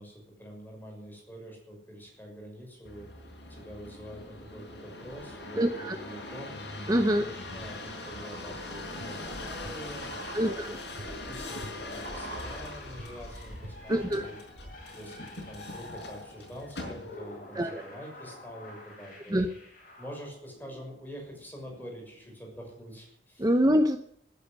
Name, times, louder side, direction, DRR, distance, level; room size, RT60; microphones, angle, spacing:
voice 1, 0.0-3.1 3.5-6.6 7.1-14.4 14.9-19.5 20.0-23.5, equal, 10° left, 0 dB, 6.5 m, -45 dB
sound 1, 2.8-17.4 18.0-18.5, left 2 dB, 70° left, 5.5 m, -42 dB
sound 2, 5.0-5.8 6.2-14.1 14.4-14.5, right 2 dB, 75° right, 2.2 m, -47 dB
voice 2, 5.6-6.0 6.9-7.3 10.3-10.8 13.9-14.3 17.5-17.8 19.3-19.5 23.4-24.0, equal, 20° right, 8 dB, 0.8 m, -25 dB
sound 3, 10.1-22.7, left 2 dB, 50° left, 7.4 m, -49 dB
14.0 x 10.5 x 9.6 m, 0.72 s
head